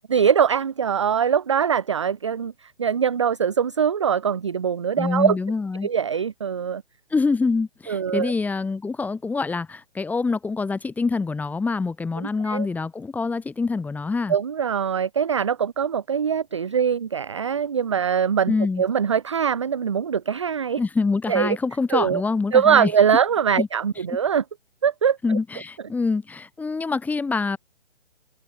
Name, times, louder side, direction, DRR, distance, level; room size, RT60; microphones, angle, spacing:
voice 1, 0.1-2.5 2.8-5.4 5.8-6.8 7.9-8.3 12.5-12.7 14.3-18.5 18.8-20.8 21.3-21.6 21.9-22.2 22.5-24.4 24.8-25.2, right 7 dB, 30° right, 0.5 m, -22 dB
voice 2, 5.0-5.9 7.1-14.4 18.5-18.8 20.8-22.9 23.6-23.7 25.2-27.6, left 4 dB, 5° left, 3.5 m, -25 dB
figure-of-eight pair, 135°, 34 cm